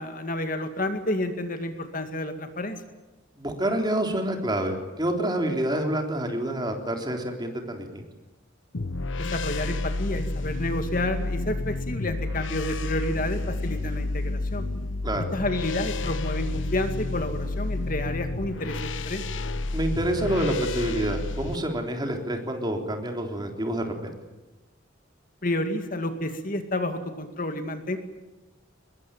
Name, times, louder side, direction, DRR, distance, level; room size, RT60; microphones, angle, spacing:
voice 1, 0.0-2.8 9.2-14.7 15.3-19.2 25.4-28.0, left 1 dB, 45° left, 8 dB, 2.2 m, -30 dB
voice 2, 3.4-8.0 15.0-15.3 19.7-24.1, right 1 dB, 20° right, 3 dB, 3.6 m, -28 dB
sound 1, 8.7-21.6, left 2 dB, 70° left, 1.0 m, -30 dB
24.0 x 21.5 x 9.1 m, 1.1 s
head